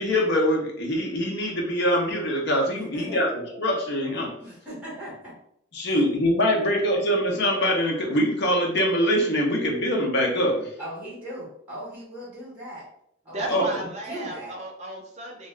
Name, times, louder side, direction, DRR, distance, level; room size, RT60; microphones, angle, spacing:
voice 1, 0.0-4.3 5.7-10.7 13.5-13.9, equal, 55° left, 0 dB, 0.7 m, -23 dB
voice 2, 2.7-3.2 4.4-5.3 5.8-6.0 10.8-12.9 13.2-14.6, equal, 5° right, -8 dB, 1.2 m, -39 dB
voice 3, 13.3-15.5, right 2 dB, 35° right, 0 dB, 0.6 m, -34 dB
2.7 x 2.3 x 3.2 m, 0.71 s
head